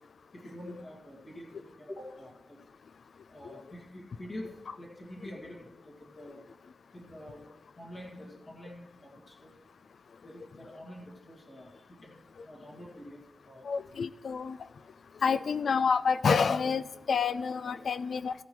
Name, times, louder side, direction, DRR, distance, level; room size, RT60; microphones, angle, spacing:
voice 1, 0.3-2.6 3.3-6.5 6.9-7.4 7.8-9.5 10.2-13.2 13.5-13.7 15.1-15.5 17.7-17.9, left 1 dB, 40° left, -3 dB, 2.0 m, -47 dB
voice 2, 13.6-14.6 15.2-18.3, left 5 dB, 80° left, 15 dB, 0.4 m, -28 dB
14.5 x 10.5 x 3.1 m, 1.0 s
wide cardioid pair, 170°, 0 cm